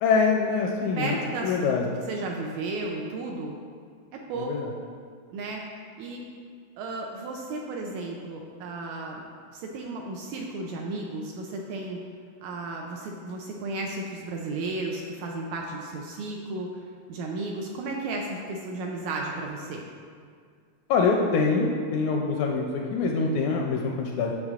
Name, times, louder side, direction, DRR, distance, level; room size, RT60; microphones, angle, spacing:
voice 1, 0.0-1.9 4.4-4.7 20.9-24.3, left 4 dB, 80° left, 0 dB, 1.7 m, -25 dB
voice 2, 1.0-3.6 4.1-4.7 5.3-5.6 6.0-6.2 6.8-9.2 9.5-12.0 12.4-16.8 17.1-19.8, right 2 dB, 80° right, 0 dB, 1.8 m, -34 dB
8.8 x 6.6 x 2.4 m, 2.1 s
omnidirectional pair, 3.7 m